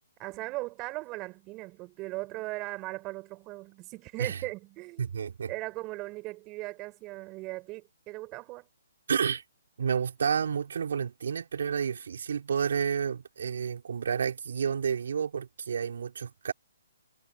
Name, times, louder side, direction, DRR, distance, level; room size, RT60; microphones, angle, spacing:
voice 1, 0.2-5.1 5.5-8.7, right 21 dB, 25° right, 4.4 m, -38 dB
voice 2, 5.0-5.5 9.1-9.4 9.8-16.5, right 7 dB, 65° right, 4.6 m, -30 dB
hypercardioid pair, 150°, 0 cm